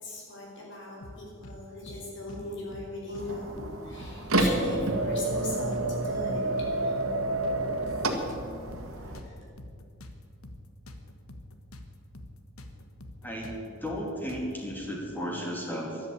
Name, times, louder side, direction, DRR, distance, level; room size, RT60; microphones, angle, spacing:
voice 1, 0.0-6.4 6.8-7.0 8.9-9.3, left 1 dB, 55° left, -2 dB, 4.7 m, -39 dB
sound 1, 1.0-1.6 1.9-2.0 2.3-3.3 3.6-3.7 4.0-5.0 5.3-5.5 5.7-6.7 7.0-7.2 7.4-8.9 9.1-11.9 12.1-12.3 12.6-14.6, left 1 dB, 75° left, 1.5 m, -45 dB
sound 2, 3.2-9.2, right 2 dB, 75° right, 1.7 m, -29 dB
voice 2, 13.2-16.1, equal, 10° left, -2 dB, 3.0 m, -34 dB
13.5 x 12.0 x 8.9 m, 2.4 s
head